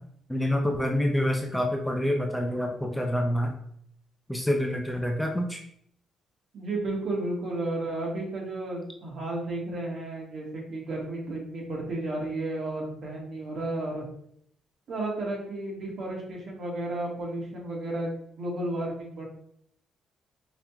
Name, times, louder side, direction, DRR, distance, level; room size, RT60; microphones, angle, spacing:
voice 1, 0.3-3.5 4.3-5.6, left 1 dB, 5° left, 2 dB, 0.5 m, -27 dB
voice 2, 6.5-14.1 14.9-19.2, right 2 dB, 55° right, -3 dB, 1.5 m, -33 dB
4.9 x 3.0 x 2.3 m, 0.67 s
cardioid pair, 90°, 0 cm